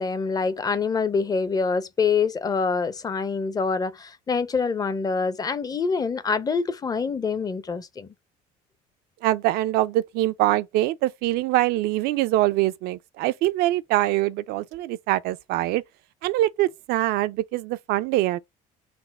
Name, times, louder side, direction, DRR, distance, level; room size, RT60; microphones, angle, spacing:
voice 1, 0.0-8.1, left 5 dB, 25° left, 0.6 m, -25 dB
voice 2, 9.2-15.8 16.2-18.4, right 16 dB, 75° right, 0.4 m, -24 dB
4.1 x 2.0 x 4.1 m
cardioid pair, 110°, 16 cm